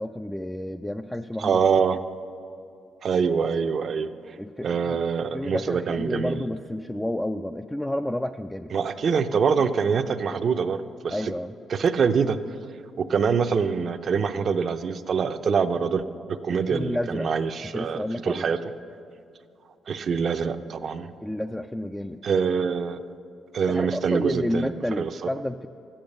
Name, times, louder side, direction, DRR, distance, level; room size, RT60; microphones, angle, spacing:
voice 1, 0.0-1.6 4.4-5.0 5.3-8.7 11.1-11.6 16.5-17.3 17.7-18.5 21.2-22.2 23.7-25.7, left 1 dB, 10° left, 6 dB, 0.3 m, -30 dB
voice 2, 1.4-2.0 3.0-4.4 4.6-6.4 8.7-11.3 11.7-12.4 13.0-16.1 16.4-18.6 19.9-21.1 22.2-23.0 23.5-25.3, right 6 dB, 55° right, 9 dB, 0.6 m, -25 dB
13.0 x 8.9 x 6.6 m, 2.6 s
cardioid pair, 90°, 0 cm